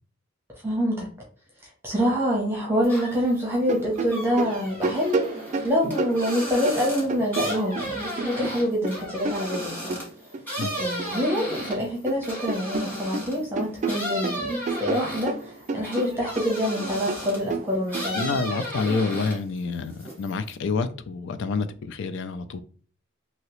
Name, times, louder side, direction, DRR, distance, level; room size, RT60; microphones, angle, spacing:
voice 1, 0.6-1.1 1.8-5.2 5.6-10.0 10.8-18.2, equal, 10° right, 0.8 m, -26 dB
sound 1, 2.8-3.4 3.7-13.4 13.8-17.5 17.9-19.6 19.9-20.5, equal, 10° left, 1.5 m, -34 dB
sound 2, 3.6-7.9 8.2-11.1 11.4-12.2 12.5-18.3, right 3 dB, 35° right, 0.3 m, -31 dB
voice 2, 18.1-22.6, left 4 dB, 65° left, 0.4 m, -28 dB
2.9 x 2.8 x 3.0 m
head